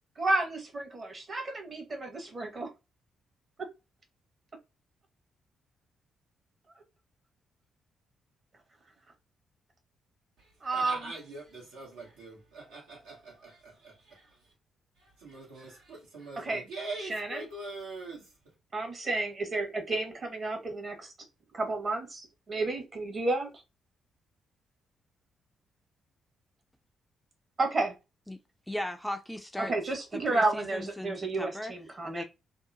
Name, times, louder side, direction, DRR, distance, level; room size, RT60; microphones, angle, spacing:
voice 1, 0.2-2.7 10.6-11.0 16.4-16.6 17.0-17.4 18.7-21.1 21.5-23.5 27.6-27.9 29.6-32.2, right 2 dB, 45° right, 1.1 m, -31 dB
voice 2, 10.4-14.5 15.0-18.3, right 2 dB, 80° right, 1.2 m, -43 dB
voice 3, 28.7-29.7 30.1-31.7 32.0-32.2, left 1 dB, 5° left, 0.4 m, -37 dB
2.8 x 2.1 x 2.6 m
hypercardioid pair, 45°, 0 cm